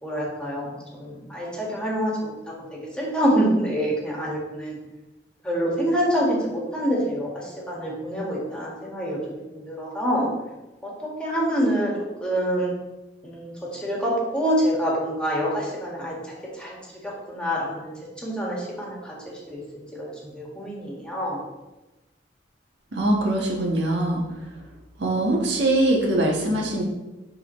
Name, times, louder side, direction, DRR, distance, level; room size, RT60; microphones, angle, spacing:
voice 1, 0.0-2.5 3.0-4.8 5.4-10.3 10.8-10.9 11.2-11.9 12.2-12.7 13.2-16.2 16.5-16.8 17.0-17.9 18.2-19.6 19.9-21.4, equal, 5° left, -5 dB, 1.9 m, -26 dB
voice 2, 22.9-24.2 25.0-26.8, right 1 dB, 85° right, -1 dB, 1.4 m, -22 dB
11.0 x 3.9 x 3.2 m, 1.0 s
head